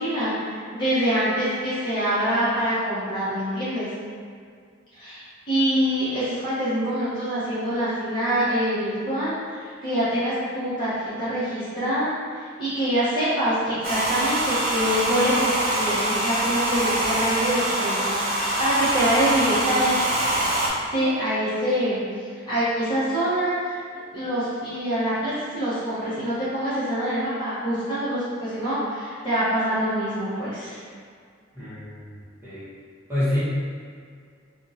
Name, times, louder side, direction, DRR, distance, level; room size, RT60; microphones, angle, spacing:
voice 1, 0.0-3.9 4.9-12.1 12.6-19.9 20.9-22.0 22.4-23.8 24.1-30.8, equal, 25° left, -14 dB, 1.1 m, -25 dB
Domestic sounds home sounds, 13.8-20.7, right 1 dB, 50° right, 0.7 m, -24 dB
voice 2, 31.5-32.1 32.4-32.6 33.1-33.4, left 1 dB, 10° right, -13 dB, 1.4 m, -26 dB
2.7 x 2.5 x 4.1 m, 2.1 s
head